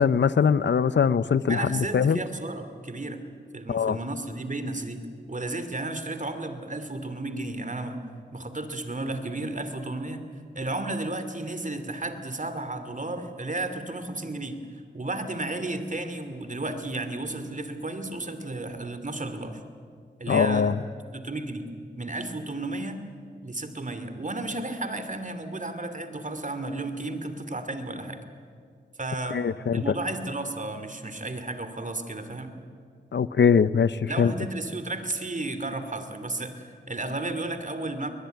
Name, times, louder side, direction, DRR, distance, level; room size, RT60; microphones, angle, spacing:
voice 1, 0.0-2.2 3.7-4.0 20.3-20.8 29.3-29.9 33.1-34.3, left 6 dB, 75° left, 16 dB, 0.7 m, -22 dB
voice 2, 1.5-3.2 3.5-5.0 5.3-8.0 8.3-10.2 10.5-14.6 14.9-19.6 20.2-20.7 21.1-21.7 22.0-23.0 23.4-28.2 29.0-29.4 29.7-32.5 34.1-38.1, right 2 dB, 45° right, 9 dB, 2.8 m, -33 dB
21.5 x 21.0 x 9.4 m, 2.2 s
cardioid pair, 50°, 19 cm